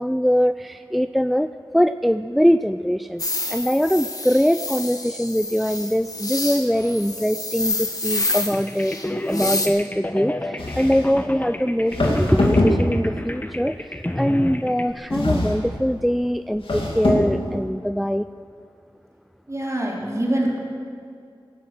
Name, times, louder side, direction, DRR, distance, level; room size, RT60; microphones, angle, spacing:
voice 1, 0.0-3.2 3.5-18.3, equal, ahead, 11 dB, 0.4 m, -22 dB
sound 1, 3.2-9.7, left 2 dB, 40° left, 1.7 m, -28 dB
sound 2, 8.5-14.9, left 1 dB, 20° left, 1.0 m, -31 dB
sound 3, 10.6-11.2 11.9-13.2 15.1-15.8 16.6-17.4, left 1 dB, 80° left, 2.5 m, -22 dB
voice 2, 19.5-20.6, right 1 dB, 35° right, -3 dB, 3.8 m, -24 dB
17.5 x 11.5 x 6.1 m, 2.4 s
wide cardioid pair, 45°, 9 cm